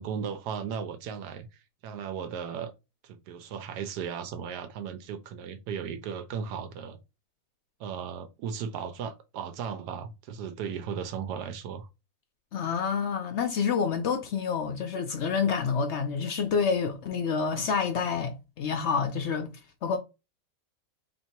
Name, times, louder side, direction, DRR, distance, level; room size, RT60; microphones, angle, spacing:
voice 1, 0.0-2.7 3.0-7.0 7.8-11.9, right 7 dB, 80° right, 1.1 m, -36 dB
voice 2, 12.5-19.5 19.8-20.0, left 6 dB, 70° left, 0.6 m, -28 dB
2.9 x 2.8 x 4.3 m
omnidirectional pair, 1.7 m